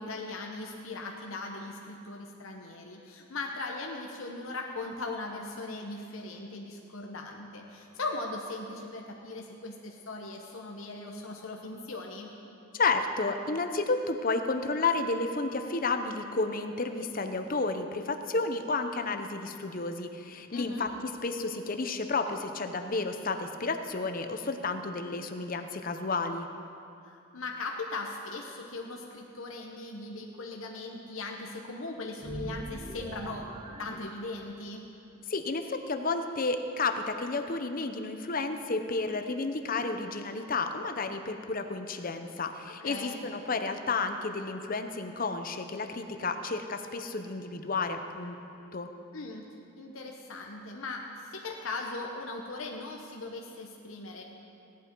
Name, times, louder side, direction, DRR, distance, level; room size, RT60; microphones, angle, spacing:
voice 1, 0.0-12.3 20.5-20.9 27.0-33.5 33.8-34.9 42.8-43.2 49.1-49.5 49.8-54.2, left 2 dB, 70° left, 0 dB, 1.0 m, -39 dB
voice 2, 12.7-26.5 35.3-48.4 48.7-48.9, left 3 dB, 40° left, 7 dB, 0.7 m, -31 dB
sound 1, 32.2-34.8, right 1 dB, 20° right, 0.5 m, -42 dB
17.0 x 11.0 x 4.6 m, 2.6 s
head